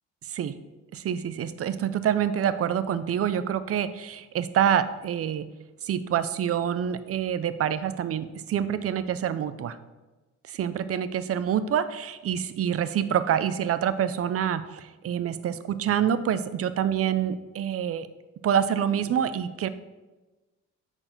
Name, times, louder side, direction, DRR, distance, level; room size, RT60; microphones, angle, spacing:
voice 1, 0.9-5.5 5.8-9.8 10.5-18.1 18.4-19.7, right 9 dB, 50° right, 13 dB, 0.5 m, -26 dB
7.7 x 4.5 x 4.5 m, 1.2 s
cardioid pair, 90°, 30 cm